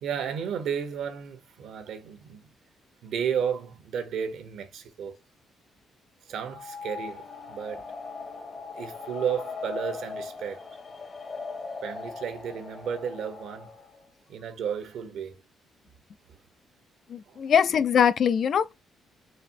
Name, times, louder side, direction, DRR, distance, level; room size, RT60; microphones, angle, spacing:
voice 1, 0.0-2.4 3.0-5.2 6.3-7.9 8.7-10.7 11.8-13.7 14.3-15.4 16.3-16.4 17.3-17.4, right 7 dB, 75° right, 0.8 m, -33 dB
sound 1, 6.4-14.1, left 4 dB, 40° left, 0.8 m, -39 dB
voice 2, 17.1-18.7, left 8 dB, 60° left, 0.3 m, -22 dB
4.1 x 2.0 x 2.6 m
cardioid pair, 90°, 0 cm